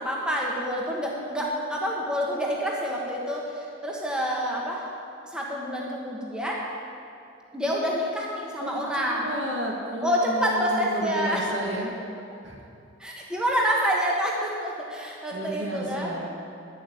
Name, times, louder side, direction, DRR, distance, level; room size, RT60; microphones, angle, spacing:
voice 1, 0.0-4.8 5.3-6.6 7.5-9.3 10.0-11.4 13.0-16.1, equal, 5° right, -3 dB, 1.4 m, -27 dB
voice 2, 8.6-11.9 12.4-12.6 15.3-16.3, equal, 70° right, -1 dB, 1.9 m, -32 dB
11.0 x 7.8 x 8.6 m, 2.5 s
head